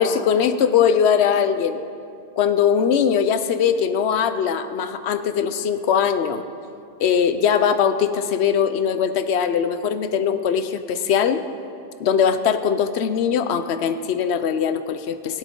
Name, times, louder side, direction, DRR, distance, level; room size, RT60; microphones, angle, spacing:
voice 1, 0.0-1.8 2.4-6.4 7.0-11.4 12.0-15.4, left 7 dB, 85° left, 11 dB, 0.9 m, -20 dB
16.5 x 11.5 x 3.8 m, 2.5 s
omnidirectional pair, 1.1 m